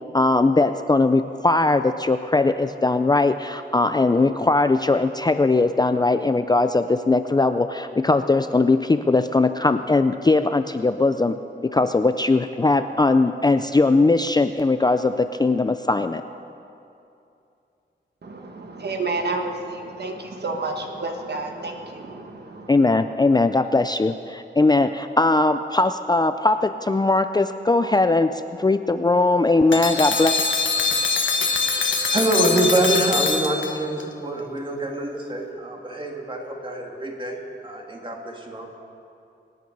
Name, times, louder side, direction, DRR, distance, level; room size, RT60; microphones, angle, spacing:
voice 1, 0.1-11.3 11.7-16.2 22.7-30.4, left 3 dB, 20° left, 9 dB, 0.4 m, -20 dB
voice 2, 18.2-23.0, right 3 dB, 60° right, 3 dB, 1.4 m, -30 dB
sound 1, 29.7-34.0, left 4 dB, 85° left, 1.5 m, -23 dB
voice 3, 31.4-37.4 37.6-38.7, right 1 dB, 25° right, 0 dB, 2.4 m, -25 dB
24.5 x 9.4 x 5.4 m, 2.7 s
wide cardioid pair, 105°, 19 cm